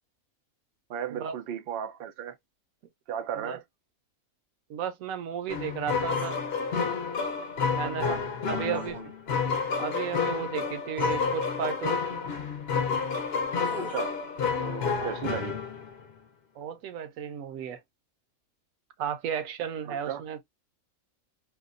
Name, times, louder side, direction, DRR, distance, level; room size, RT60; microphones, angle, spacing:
voice 1, 0.9-2.4 3.1-3.6 7.8-8.2 8.5-9.1 13.7-14.2 14.6-15.6 19.8-20.2, right 9 dB, 90° right, 0.5 m, -36 dB
voice 2, 4.7-6.4 7.7-8.1 8.5-9.0 9.8-12.0 14.9-15.2 16.6-17.8 19.0-20.4, right 8 dB, 70° right, 0.9 m, -34 dB
sound 1, 5.5-16.1, left 5 dB, 55° left, 0.8 m, -30 dB
sound 2, 6.1-6.4 8.7-9.0 10.3-10.4 10.9-11.3 13.2-14.1, equal, ahead, 0.4 m, -43 dB
2.7 x 2.2 x 2.4 m
omnidirectional pair, 1.5 m